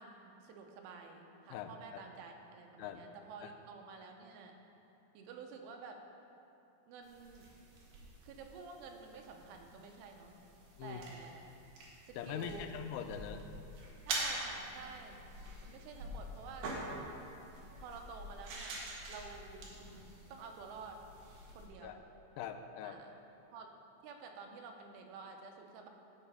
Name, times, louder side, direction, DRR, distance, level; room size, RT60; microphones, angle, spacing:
voice 1, 0.0-4.6 5.1-6.0 6.9-7.5 8.2-10.4 10.8-11.5 12.0-12.7 14.1-15.2 15.6-16.7 17.8-19.7 20.3-21.0 21.5-22.0 22.8-23.1 23.5-23.7 24.0-25.9, right 5 dB, 85° right, 3 dB, 3.3 m, -50 dB
voice 2, 1.5-2.0 2.8-3.0 3.4-3.5 10.8-11.0 12.2-13.4 21.8-22.0 22.4-23.0, left 8 dB, 90° left, 7 dB, 3.0 m, -42 dB
sound 1, 7.0-21.7, right 2 dB, 65° right, 2.7 m, -46 dB
14.5 x 4.9 x 5.5 m, 2.8 s
omnidirectional pair, 5.4 m